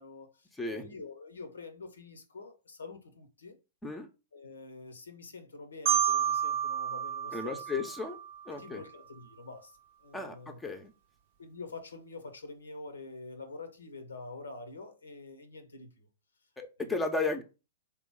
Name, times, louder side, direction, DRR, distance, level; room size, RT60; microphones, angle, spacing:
voice 1, 0.0-3.6 4.3-7.7 8.5-10.6 11.4-16.1 16.8-16.9, left 3 dB, 75° left, 0.8 m, -46 dB
voice 2, 0.6-0.9 3.8-4.1 7.3-8.2 8.5-8.8 10.1-10.9 16.6-17.4, left 3 dB, 10° left, 0.7 m, -34 dB
Marimba xylophone, 5.9-8.7, right 9 dB, 50° right, 0.6 m, -31 dB
3.8 x 2.9 x 3.6 m
figure-of-eight pair, 105°, 0 cm